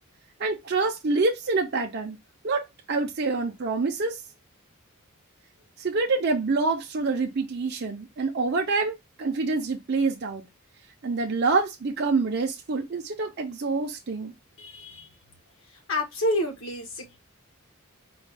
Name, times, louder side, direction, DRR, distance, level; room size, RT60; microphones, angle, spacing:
voice 1, 0.4-2.2 2.4-4.2 5.8-10.4 11.0-14.3, right 3 dB, 50° right, 0.6 m, -26 dB
voice 2, 14.6-15.1 15.7-17.2, left 1 dB, 60° left, 1.2 m, -29 dB
4.1 x 2.3 x 3.3 m
head